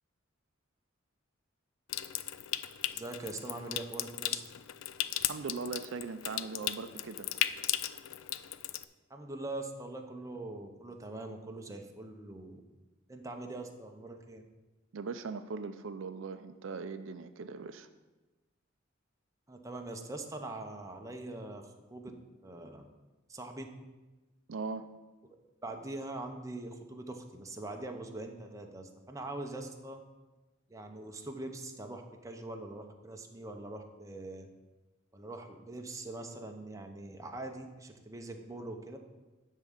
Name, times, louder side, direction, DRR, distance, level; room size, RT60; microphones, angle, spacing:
Water tap faucet / Sink (filling or washing) / Trickle dribble, 1.9-8.9, left 13 dB, 80° left, 0.4 m, -36 dB
voice 1, 2.9-4.4 9.1-12.6 13.1-14.4 19.5-22.1 22.4-22.9 23.3-23.7 25.3-30.0 30.7-34.5 35.1-39.0, right 2 dB, 15° right, 3 dB, 0.8 m, -43 dB
voice 2, 5.3-7.3 14.9-17.9 24.5-24.9, right 4 dB, 70° right, 9 dB, 0.4 m, -40 dB
10.0 x 3.7 x 7.2 m, 1.1 s
head